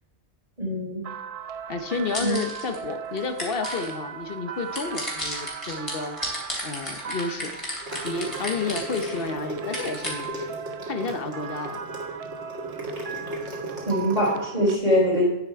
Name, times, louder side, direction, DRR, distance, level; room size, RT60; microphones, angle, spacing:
voice 1, 0.6-1.1 2.2-2.4 13.9-15.3, equal, 35° right, -5 dB, 3.6 m, -23 dB
sound 1, 1.0-14.8, right 7 dB, 65° right, 0.3 m, -38 dB
voice 2, 1.7-10.5 10.9-11.8, left 4 dB, 60° left, 7 dB, 1.0 m, -31 dB
sound 2, 1.9-2.8 3.2-3.9 4.7-9.2 9.7-10.2, equal, 25° left, 3.2 m, -33 dB
sound 3, 7.7-14.4, right 1 dB, 90° right, 2.2 m, -35 dB
9.6 x 7.5 x 4.6 m, 1.1 s
omnidirectional pair, 1.2 m